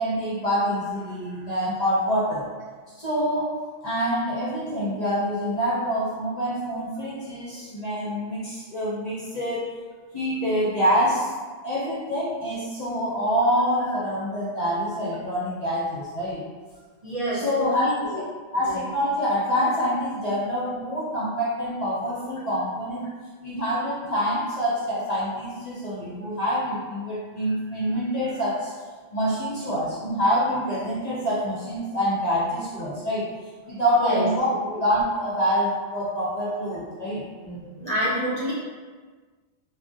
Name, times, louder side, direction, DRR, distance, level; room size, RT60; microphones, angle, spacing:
voice 1, 0.0-2.5 3.0-3.6 3.8-9.7 10.1-11.3 11.6-16.4 17.3-18.1 18.5-23.1 23.4-28.7 29.1-33.3 33.7-37.3, equal, 45° left, -8 dB, 0.5 m, -26 dB
voice 2, 17.0-18.2 18.6-18.8 34.0-34.3 37.4-38.5, right 1 dB, 45° right, -9 dB, 0.5 m, -28 dB
3.5 x 2.0 x 2.6 m, 1.5 s
omnidirectional pair, 1.2 m